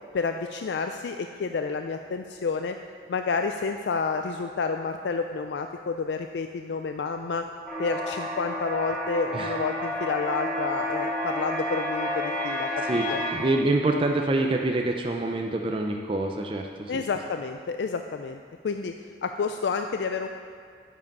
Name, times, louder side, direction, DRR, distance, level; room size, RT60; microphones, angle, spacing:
voice 1, 0.1-2.8 3.1-7.5 7.8-13.2 16.9-18.9 19.2-20.3, left 4 dB, 75° left, 6 dB, 0.4 m, -30 dB
sound 1, 7.7-13.3, left 1 dB, 5° left, 1.8 m, -30 dB
voice 2, 12.8-17.0, right 2 dB, 30° right, 2 dB, 0.5 m, -26 dB
9.6 x 7.5 x 5.3 m, 2.1 s
head